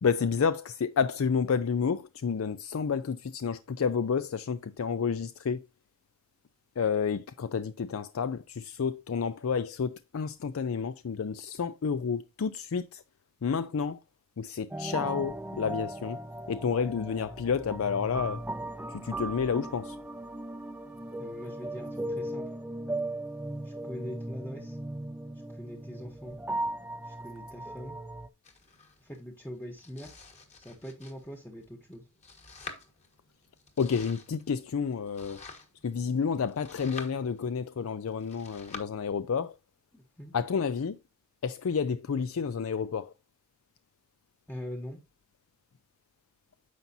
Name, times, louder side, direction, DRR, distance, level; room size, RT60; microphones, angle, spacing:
voice 1, 0.0-5.6 6.8-13.0 13.4-14.0 14.4-16.2 16.5-18.4 18.9-20.0 33.8-35.4 35.8-39.5 40.3-41.0 41.4-43.1, left 6 dB, 75° left, 0.4 m, -30 dB
sound 1, 14.7-28.3, right 1 dB, 10° right, 0.4 m, -37 dB
voice 2, 21.2-22.4 23.7-24.8 25.6-26.4 27.1-28.0 29.1-30.1 30.6-32.0 40.2-40.3 44.5-45.0, equal, 10° left, 0.9 m, -42 dB
Domestic sounds home sounds, 28.4-38.8, left 4 dB, 35° left, 1.4 m, -49 dB
9.3 x 5.9 x 2.7 m
head